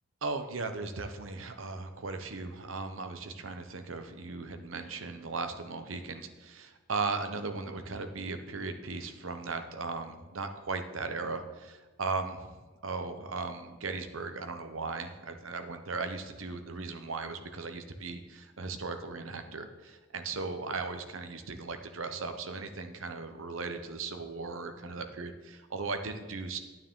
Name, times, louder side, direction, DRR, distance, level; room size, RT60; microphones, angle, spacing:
voice 1, 0.2-26.6, right 3 dB, 70° right, 7 dB, 0.8 m, -37 dB
9.2 x 9.2 x 3.7 m, 1.3 s
head